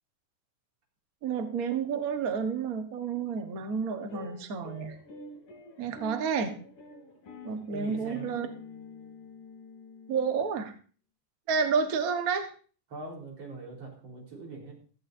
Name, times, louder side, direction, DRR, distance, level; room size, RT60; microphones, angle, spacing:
voice 1, 1.2-5.0 5.8-6.5 7.4-8.5 10.1-10.7 11.5-12.5, right 6 dB, 70° right, 6 dB, 0.8 m, -30 dB
sound 1, 4.1-10.6, left 3 dB, 75° left, 5.0 m, -47 dB
voice 2, 7.7-8.4 12.9-14.8, right 3 dB, 50° right, -1 dB, 5.1 m, -42 dB
16.5 x 14.0 x 2.7 m, 0.40 s
omnidirectional pair, 3.7 m